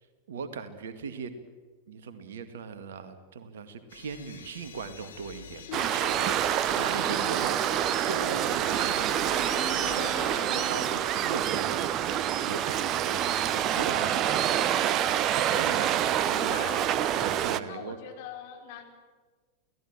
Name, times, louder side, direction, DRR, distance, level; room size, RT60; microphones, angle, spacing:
voice 1, 0.3-1.3 1.9-7.6 8.0-9.4 9.8-10.0 10.5-14.8 15.4-16.0 16.2-16.9 17.1-18.0, right 5 dB, 60° right, 10 dB, 2.1 m, -39 dB
sound 1, 3.9-10.4, left 8 dB, 65° left, 2.1 m, -48 dB
voice 2, 5.5-7.4 13.1-13.8 16.3-16.8 17.6-18.8, left 8 dB, 50° left, 3 dB, 4.2 m, -43 dB
Waves surf, 5.7-17.6, right 10 dB, 35° right, 0.9 m, -27 dB
sound 2, 8.7-12.1, left 1 dB, 25° left, 5.7 m, -42 dB
29.0 x 17.5 x 7.5 m, 1.4 s
figure-of-eight pair, 90°, 0 cm